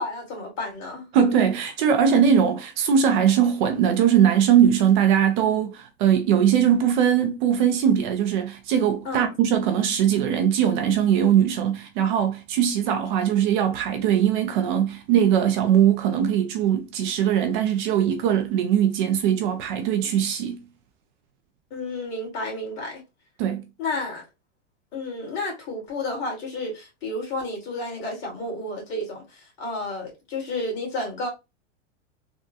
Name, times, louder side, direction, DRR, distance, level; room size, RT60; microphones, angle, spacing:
voice 1, 0.0-1.1 9.0-9.2 21.7-23.0 23.8-24.2 24.9-31.3, left 2 dB, 35° left, 1.8 m, -31 dB
voice 2, 1.1-20.6 23.4-23.7, right 9 dB, 45° right, 0.5 m, -21 dB
3.5 x 2.2 x 2.6 m
supercardioid pair, 145°, 35 cm